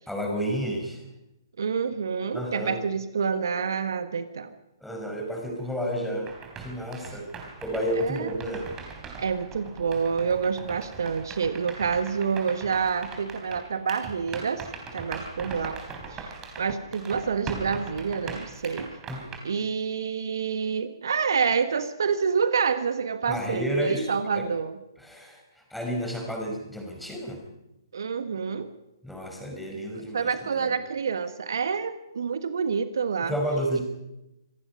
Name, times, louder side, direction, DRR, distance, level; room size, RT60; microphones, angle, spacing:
voice 1, 0.1-1.0 2.3-2.8 4.8-6.3 6.6-7.3 7.6-8.7 19.1-19.3 23.2-24.1 24.3-24.5 25.0-27.4 29.0-30.8 33.3-33.8, equal, ahead, 1 dB, 5.3 m, -31 dB
voice 2, 1.6-4.5 8.0-8.3 9.2-14.7 14.9-15.8 16.1-18.9 19.4-24.7 27.9-28.7 30.1-33.3, right 6 dB, 60° right, 10 dB, 1.4 m, -28 dB
sound 1, 6.3-19.4, right 4 dB, 20° right, 3.9 m, -41 dB
26.5 x 18.5 x 5.4 m, 0.92 s
figure-of-eight pair, 125°, 2 cm